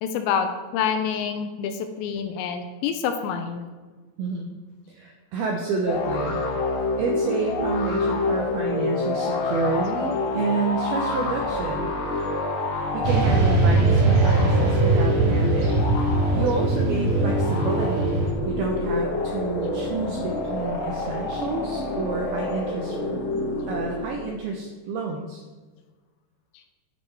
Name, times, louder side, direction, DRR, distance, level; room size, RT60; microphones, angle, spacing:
voice 1, 0.0-3.7, left 7 dB, 80° left, 7 dB, 2.7 m, -27 dB
voice 2, 4.2-4.5 4.9-6.4 7.0-11.9 12.2-12.4 12.9-15.7 16.3-23.2 23.7-25.4, right 4 dB, 85° right, 1 dB, 2.2 m, -29 dB
sound 1, 5.9-24.3, left 2 dB, 65° left, 2.6 m, -27 dB
Motorcycle / Traffic noise roadway noise, 13.0-18.3, right 2 dB, 55° right, 3.8 m, -21 dB
9.7 x 8.6 x 4.6 m, 1.4 s
omnidirectional pair, 5.5 m